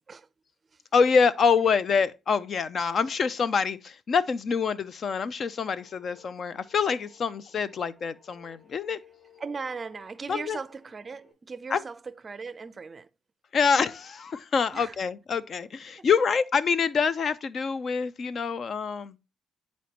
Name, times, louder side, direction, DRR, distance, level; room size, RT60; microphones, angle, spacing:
voice 1, 0.9-9.0 10.3-10.6 11.7-11.8 13.5-19.2, left 5 dB, 50° left, 0.4 m, -26 dB
sound 1, 5.7-11.3, left 8 dB, 30° left, 4.2 m, -58 dB
voice 2, 9.4-13.1 14.7-15.0 16.0-16.1, right 4 dB, 35° right, 0.4 m, -38 dB
9.8 x 4.1 x 2.9 m
cardioid pair, 90°, 0 cm